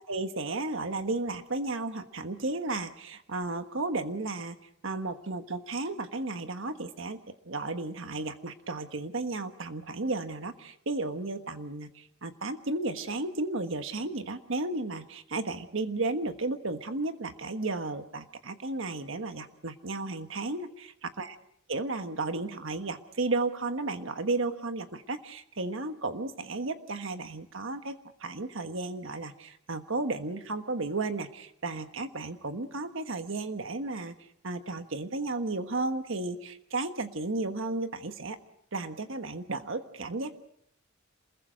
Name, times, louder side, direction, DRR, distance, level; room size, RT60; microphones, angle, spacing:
voice 1, 0.0-4.6 4.8-7.2 7.4-20.9 21.2-21.3 21.7-27.9 28.2-34.1 34.4-38.4 38.7-40.3, right 2 dB, 70° right, 8 dB, 1.4 m, -33 dB
28.0 x 21.5 x 5.2 m, 0.70 s
head